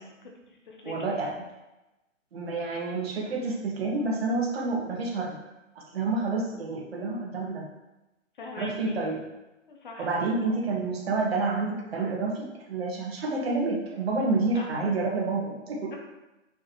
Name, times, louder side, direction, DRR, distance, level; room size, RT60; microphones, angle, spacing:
voice 1, 0.2-1.1 8.4-9.0 9.7-10.2 14.5-14.7 15.9-16.0, left 3 dB, 40° left, 1 dB, 1.1 m, -42 dB
voice 2, 0.8-1.4 2.3-5.4 5.8-7.7 8.6-9.2 10.0-15.9, right 3 dB, 50° right, -2 dB, 1.8 m, -29 dB
6.3 x 6.2 x 3.1 m, 1.0 s
hypercardioid pair, 165°, 39 cm